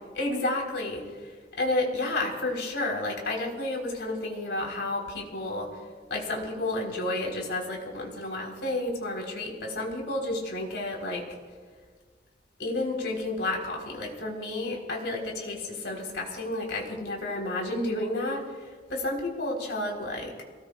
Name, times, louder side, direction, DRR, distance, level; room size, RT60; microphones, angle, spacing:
voice 1, 0.1-5.7 6.1-11.2 12.6-20.3, left 2 dB, 90° left, 0 dB, 3.9 m, -31 dB
30.0 x 19.0 x 2.4 m, 1.5 s
head